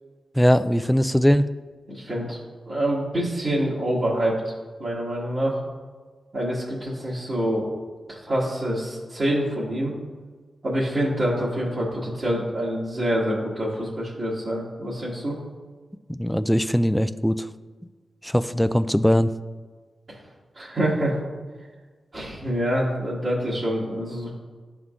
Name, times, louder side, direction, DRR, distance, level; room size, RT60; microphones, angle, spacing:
voice 1, 0.4-1.5 16.1-17.5 18.2-19.3, equal, 5° left, 12 dB, 0.3 m, -20 dB
voice 2, 1.9-2.4 2.7-4.3 4.8-5.6 6.3-7.7 8.1-9.9 10.6-15.3 20.5-21.2 22.1-24.3, equal, 50° right, -9 dB, 1.7 m, -26 dB
11.0 x 3.7 x 2.4 m, 1.4 s
cardioid pair, 50°, 0 cm